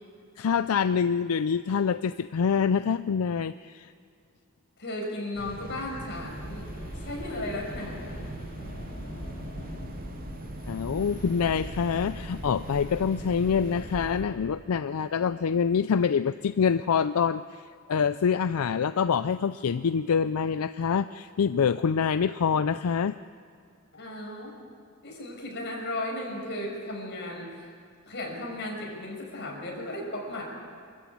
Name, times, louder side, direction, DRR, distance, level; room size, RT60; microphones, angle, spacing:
voice 1, 0.4-3.9 10.7-17.6 17.9-23.2, left 6 dB, 80° left, 13 dB, 0.4 m, -26 dB
voice 2, 4.8-6.7 7.0-8.3 23.9-24.6 25.0-27.7 28.1-30.4, left 1 dB, 55° left, -1 dB, 5.7 m, -35 dB
sound 1, 5.3-14.0, right 2 dB, 40° right, 0.7 m, -42 dB
sound 2, 6.1-14.2, equal, 40° left, 4.3 m, -41 dB
24.5 x 14.0 x 8.6 m, 2.4 s
head